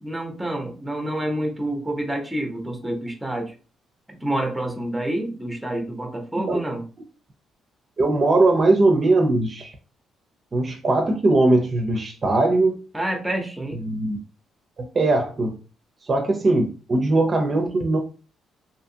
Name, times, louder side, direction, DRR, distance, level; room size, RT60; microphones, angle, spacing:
voice 1, 0.0-3.5 4.1-6.9 12.9-13.8, right 1 dB, 5° right, 2 dB, 0.8 m, -28 dB
voice 2, 8.0-9.7 10.5-12.8 13.7-14.2 14.8-15.5 16.0-18.0, right 2 dB, 40° right, 3 dB, 0.6 m, -20 dB
2.6 x 2.4 x 2.7 m, 0.35 s
cardioid pair, 90°, 0 cm